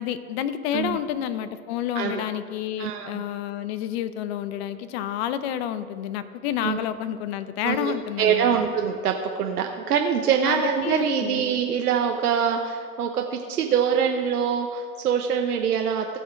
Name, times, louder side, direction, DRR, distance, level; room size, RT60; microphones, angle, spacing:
voice 1, 0.0-8.6 10.4-11.4, left 10 dB, 45° left, 13 dB, 0.7 m, -29 dB
voice 2, 2.8-3.2 6.6-6.8 7.6-16.1, right 7 dB, 80° right, 3 dB, 1.0 m, -24 dB
16.0 x 6.5 x 4.5 m, 2.2 s
hypercardioid pair, 115°, 45 cm